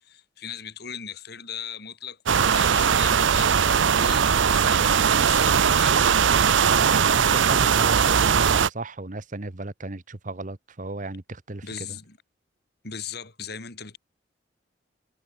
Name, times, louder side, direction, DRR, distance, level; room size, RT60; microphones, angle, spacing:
voice 1, 0.0-6.2 11.6-12.2 12.8-14.0, left 7 dB, 60° left, 4.5 m, -38 dB
sound 1, 2.3-8.7, right 7 dB, 80° right, 0.6 m, -20 dB
voice 2, 6.7-11.6 11.9-12.0, right 2 dB, 45° right, 1.2 m, -34 dB
head